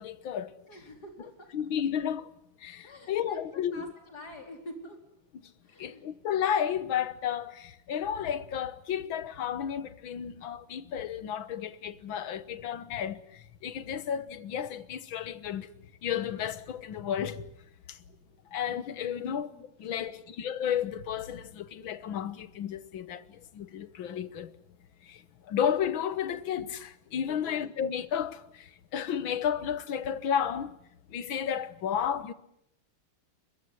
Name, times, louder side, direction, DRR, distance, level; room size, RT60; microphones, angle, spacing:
voice 1, 0.0-0.5 1.5-2.3 2.6-3.8 5.8-15.7 16.0-17.4 17.9-18.0 18.5-19.5 19.8-24.5 25.1-25.2 25.5-28.7 28.9-30.7 31.1-32.3, left 8 dB, 70° left, 2.0 m, -32 dB
voice 2, 0.7-1.5 2.8-5.0 5.6-6.1 18.1-18.2 18.9-20.2 27.3-27.5, equal, 50° left, 4.9 m, -48 dB
23.0 x 22.0 x 9.8 m
omnidirectional pair, 2.3 m